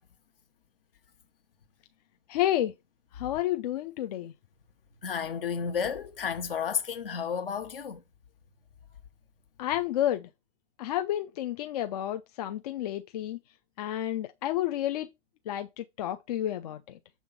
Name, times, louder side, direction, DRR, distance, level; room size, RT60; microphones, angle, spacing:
voice 1, 2.3-2.7 3.1-4.3 9.6-10.3 10.8-13.4 13.8-15.1 15.5-17.0, left 12 dB, 40° left, 0.6 m, -30 dB
voice 2, 5.0-8.0, left 7 dB, 65° left, 1.3 m, -32 dB
7.1 x 3.7 x 5.2 m
figure-of-eight pair, 105°, 31 cm